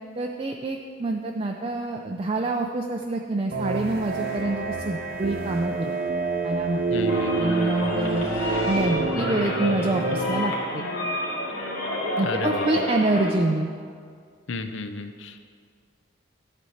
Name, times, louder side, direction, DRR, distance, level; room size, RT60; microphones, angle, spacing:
voice 1, 0.2-5.9 6.4-6.8 7.4-8.3 8.7-10.8 12.2-13.7, right 2 dB, 25° right, 2 dB, 0.4 m, -26 dB
sound 1, 3.5-10.4, right 3 dB, 45° right, 0.9 m, -27 dB
voice 2, 6.9-7.7 12.2-12.8 14.5-15.4, left 3 dB, 65° left, 8 dB, 0.6 m, -33 dB
sound 2, 7.1-13.3, left 1 dB, 85° left, 2.2 m, -30 dB
sound 3, 7.4-9.8, equal, 25° left, 2.0 m, -45 dB
12.5 x 4.2 x 7.8 m, 2.1 s
head